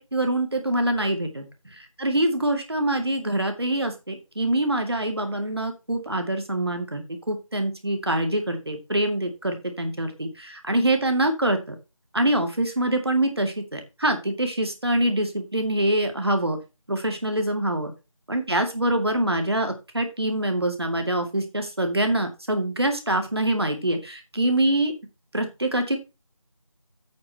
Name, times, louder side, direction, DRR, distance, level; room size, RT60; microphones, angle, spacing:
voice 1, 0.0-1.4 1.7-11.8 12.1-16.6 16.9-17.9 18.3-24.9 25.3-26.0, right 1 dB, 50° right, 5 dB, 2.2 m, -25 dB
8.7 x 4.9 x 6.1 m, 0.27 s
figure-of-eight pair, 180°, 17 cm